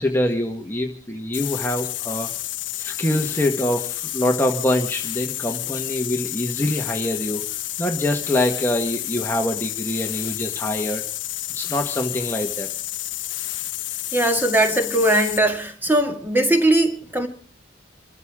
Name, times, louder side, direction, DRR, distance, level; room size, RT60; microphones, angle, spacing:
voice 1, 0.0-2.3 2.8-7.5 7.8-11.0 11.5-12.7, left 1 dB, 10° left, 1.5 m, -24 dB
sound 1, 1.3-15.5, left 15 dB, 75° left, 1.0 m, -30 dB
voice 2, 14.1-17.3, right 1 dB, 10° right, 2.1 m, -20 dB
28.5 x 13.5 x 3.7 m
head